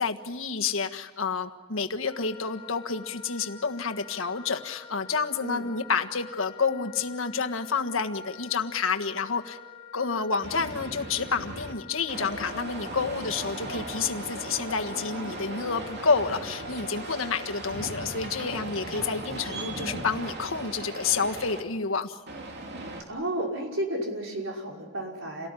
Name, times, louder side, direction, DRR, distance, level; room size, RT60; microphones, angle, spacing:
voice 1, 0.0-9.6 9.9-22.2, left 5 dB, 90° left, 5 dB, 1.6 m, -29 dB
Wind instrument woodwind instrument, 2.1-18.7, left 7 dB, 50° left, 3.2 m, -48 dB
sound 1, 10.4-11.7 12.1-21.6 22.3-23.0, right 2 dB, 55° right, 3.0 m, -37 dB
voice 2, 23.1-25.5, right 1 dB, 70° right, 0 dB, 5.5 m, -32 dB
28.5 x 18.5 x 10.0 m, 1.3 s
head